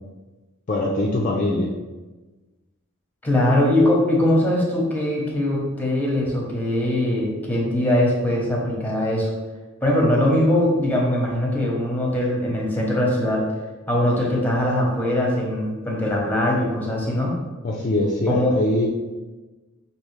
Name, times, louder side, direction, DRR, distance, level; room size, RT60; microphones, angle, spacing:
voice 1, 0.7-1.7 17.6-18.9, left 1 dB, 35° left, -3 dB, 0.4 m, -22 dB
voice 2, 3.2-9.3 9.8-13.4 13.9-17.3 18.3-18.5, left 1 dB, 10° left, -3 dB, 0.9 m, -21 dB
5.4 x 2.8 x 3.2 m, 1.2 s
head